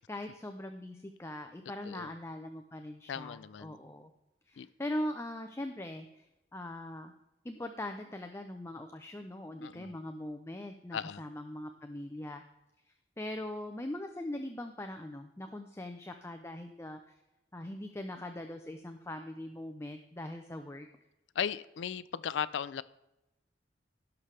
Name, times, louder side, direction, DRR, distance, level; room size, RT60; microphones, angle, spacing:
voice 1, 0.0-4.1 4.5-6.3 6.5-7.1 7.4-12.4 12.9-17.1 17.5-20.9, left 1 dB, 15° left, 6 dB, 0.6 m, -41 dB
voice 2, 3.1-3.8 4.6-4.7 9.6-9.9 10.9-11.2 21.4-22.8, left 8 dB, 75° left, 16 dB, 0.4 m, -36 dB
16.5 x 6.6 x 3.3 m, 0.94 s
head